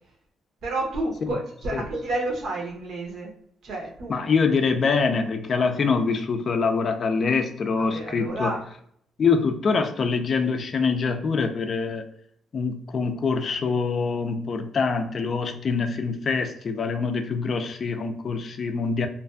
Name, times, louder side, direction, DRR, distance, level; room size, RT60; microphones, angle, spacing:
voice 1, 0.6-3.3 3.6-4.3 7.8-8.6, right 2 dB, 65° right, 0 dB, 0.8 m, -30 dB
voice 2, 4.1-8.6 9.2-12.1 12.5-19.1, left 4 dB, 50° left, 7 dB, 0.3 m, -24 dB
2.5 x 2.3 x 2.3 m, 0.66 s
cardioid pair, 90°, 0 cm